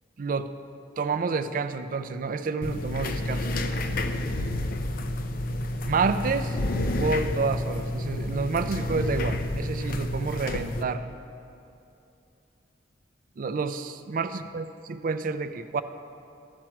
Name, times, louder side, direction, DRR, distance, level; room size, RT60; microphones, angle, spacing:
voice 1, 0.2-0.5 1.0-3.6 5.9-6.6 7.0-11.1 13.4-15.8, right 4 dB, 50° right, 11 dB, 0.4 m, -29 dB
sound 1, 2.6-10.8, left 1 dB, 50° left, 0.5 m, -29 dB
13.0 x 4.5 x 6.1 m, 2.7 s
head